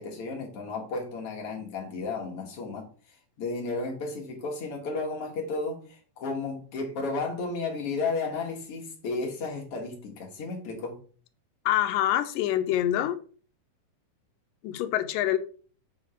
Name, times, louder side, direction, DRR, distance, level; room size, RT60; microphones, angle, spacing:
voice 1, 0.0-2.9 3.4-11.0, left 3 dB, 50° left, 2.1 m, -33 dB
voice 2, 11.7-13.2 14.6-15.4, left 12 dB, 90° left, 2.3 m, -25 dB
7.7 x 3.6 x 4.8 m
omnidirectional pair, 3.8 m